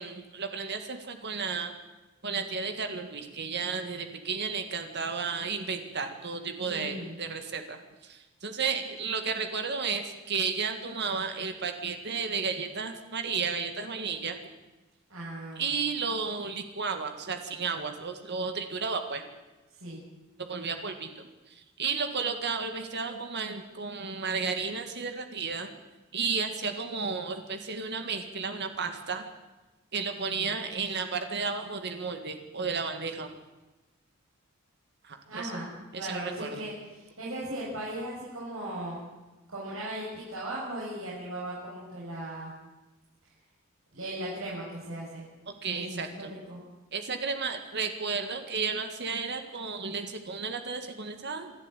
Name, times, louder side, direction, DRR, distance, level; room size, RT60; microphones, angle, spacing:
voice 1, 0.0-1.7 2.2-14.4 15.6-19.2 20.4-25.7 26.1-29.2 29.9-33.4 35.0-35.5 35.9-36.6 44.2-44.3 45.6-46.3 46.9-51.5, right 5 dB, 55° right, 7 dB, 2.0 m, -33 dB
voice 2, 6.6-7.1 15.1-15.7 19.8-20.0 30.1-30.5 35.3-35.7 36.0-39.0 39.5-42.5 43.9-45.2 45.7-46.6, right 1 dB, 70° right, -7 dB, 7.2 m, -38 dB
26.5 x 12.0 x 9.1 m, 1.1 s
head